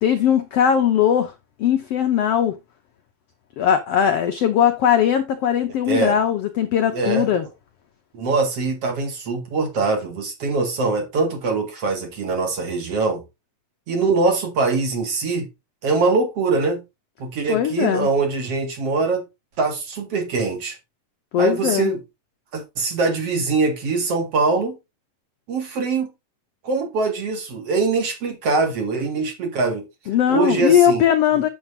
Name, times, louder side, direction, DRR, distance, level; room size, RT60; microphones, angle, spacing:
voice 1, 0.0-1.3 1.6-2.6 3.6-7.5 17.5-18.1 21.3-21.9 30.1-31.5, left 9 dB, 75° left, 1.4 m, -19 dB
voice 2, 6.9-7.3 8.1-13.2 13.9-15.5 15.8-16.8 17.2-19.2 19.6-20.8 21.4-22.0 22.5-24.8 25.5-26.1 26.6-29.9 30.3-31.0, right 3 dB, 50° right, 2.8 m, -22 dB
9.3 x 8.0 x 2.8 m
omnidirectional pair, 3.9 m